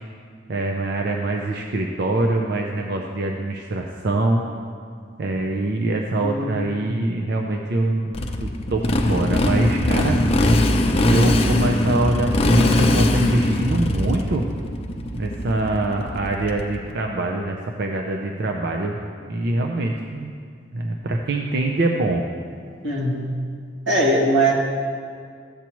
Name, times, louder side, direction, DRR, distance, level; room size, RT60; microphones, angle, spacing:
voice 1, 0.5-4.4 5.2-10.2 11.1-14.5 15.1-19.0 19.3-20.3 20.7-22.2, right 2 dB, 60° right, 1 dB, 0.6 m, -24 dB
voice 2, 6.2-6.6 11.5-11.6 22.8-23.3 23.9-24.5, right 1 dB, 90° right, -4 dB, 2.0 m, -21 dB
Motorcycle, 8.1-16.8, left 1 dB, 35° left, 0.6 m, -20 dB
14.0 x 8.3 x 3.0 m, 2.2 s
head